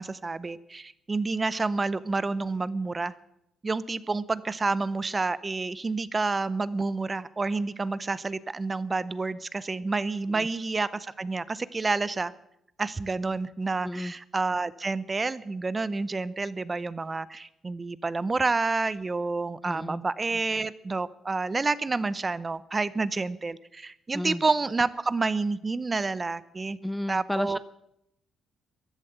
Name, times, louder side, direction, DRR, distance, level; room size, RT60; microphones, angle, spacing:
voice 1, 0.0-3.1 3.6-12.3 12.8-26.8 27.1-27.6, right 3 dB, 25° right, 17 dB, 0.7 m, -29 dB
voice 2, 19.6-20.0 24.1-24.4 26.8-27.6, left 1 dB, 5° left, 15 dB, 0.5 m, -32 dB
15.0 x 11.0 x 7.8 m, 0.80 s
cardioid pair, 90°, 0 cm